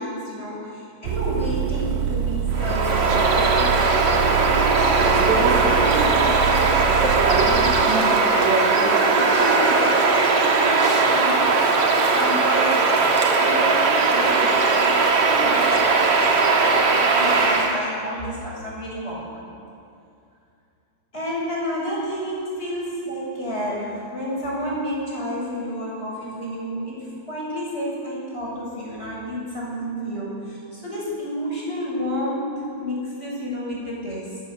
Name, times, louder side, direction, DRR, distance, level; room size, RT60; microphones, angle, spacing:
voice 1, 0.0-6.9 7.1-12.8 13.1-19.4 21.1-34.3, equal, 15° left, -5 dB, 7.1 m, -30 dB
sound 1, 1.0-7.8, right 8 dB, 85° right, 2.9 m, -26 dB
Bird vocalization bird call bird song, 2.5-17.8, right 4 dB, 50° right, 2.1 m, -19 dB
29.0 x 14.0 x 6.8 m, 2.5 s
omnidirectional pair, 4.7 m